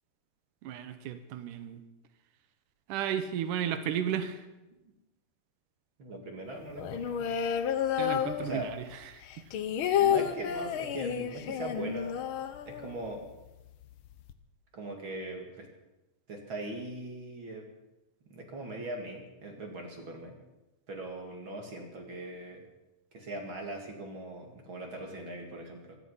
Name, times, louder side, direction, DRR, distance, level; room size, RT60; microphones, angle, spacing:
voice 1, 0.6-1.8 2.9-4.4 8.0-8.8 9.1-9.4, right 9 dB, 90° right, 10 dB, 2.5 m, -34 dB
voice 2, 6.0-7.3 8.4-8.7 10.0-12.2 12.7-13.2 14.7-15.7 16.3-17.7 18.3-20.4 20.9-22.6 23.1-26.0, right 1 dB, 45° right, 1 dB, 2.7 m, -40 dB
sound 1, 6.8-8.9 9.2-13.2 13.5-13.6 13.8-14.3, left 9 dB, 90° left, 1.1 m, -30 dB
16.0 x 14.0 x 5.6 m, 1.0 s
omnidirectional pair, 3.5 m